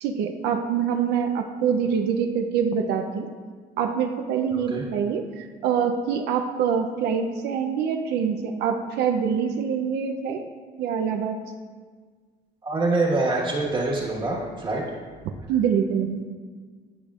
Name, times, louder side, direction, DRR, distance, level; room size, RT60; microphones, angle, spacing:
voice 1, 0.0-3.3 3.8-10.5 10.8-11.4 15.2-16.3, right 7 dB, 80° right, 4 dB, 0.5 m, -25 dB
voice 2, 4.5-4.8 12.6-14.8, right 2 dB, 30° right, -4 dB, 1.3 m, -25 dB
11.0 x 5.0 x 2.4 m, 1.5 s
cardioid pair, 110°, 17 cm